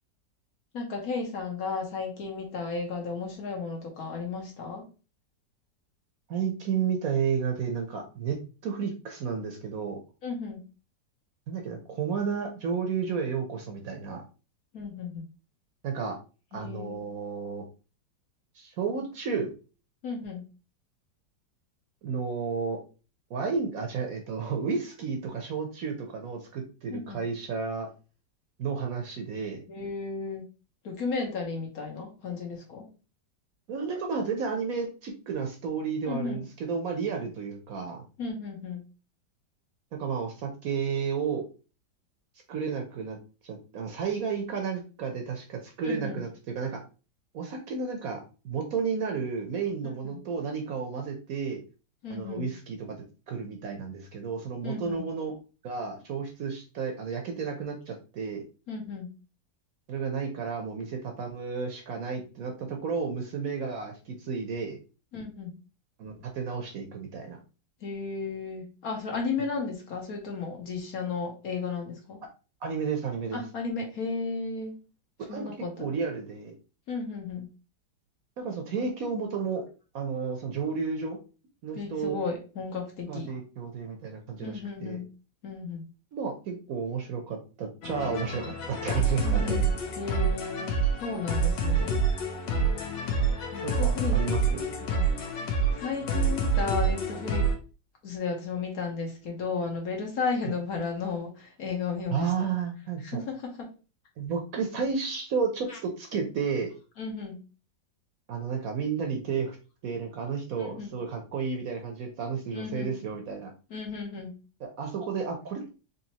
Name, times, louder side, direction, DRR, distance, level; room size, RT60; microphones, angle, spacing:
voice 1, 0.7-4.8 10.2-10.6 14.7-15.3 16.5-17.0 20.0-20.4 26.9-27.2 29.7-30.5 30.8-32.9 36.1-36.4 38.2-38.8 45.8-46.2 49.8-50.2 52.0-52.5 54.6-55.0 58.7-59.1 65.1-65.5 67.8-72.2 73.3-74.8 75.3-76.0 76.9-77.5 81.7-83.3 84.4-85.1 85.4-85.9 89.2-92.0 93.5-94.2 94.8-95.0 95.7-97.5 98.0-102.3 103.0-103.7 105.7-105.8 107.0-107.4 110.6-110.9 112.5-113.0 113.7-114.3, left 4 dB, 60° left, 1 dB, 1.4 m, -34 dB
voice 2, 6.3-10.0 11.5-14.2 15.8-16.1 16.5-17.6 18.6-19.5 22.0-22.8 23.3-27.9 28.6-29.6 33.7-38.0 39.9-41.5 42.5-43.2 43.4-46.3 46.5-46.8 47.3-51.6 52.1-53.0 53.3-55.4 55.6-58.4 59.9-64.8 66.0-67.4 72.6-73.4 75.3-76.5 78.4-79.6 79.9-81.2 81.6-82.2 83.1-85.0 86.1-89.8 93.6-94.7 100.4-100.5 102.1-103.2 104.2-106.7 108.3-109.6 109.8-113.5 114.6-115.7, right 5 dB, 60° right, 3 dB, 1.0 m, -32 dB
sound 1, 87.8-97.6, right 3 dB, 90° left, 1.5 m, -27 dB
4.1 x 3.1 x 2.8 m, 0.33 s
omnidirectional pair, 1.9 m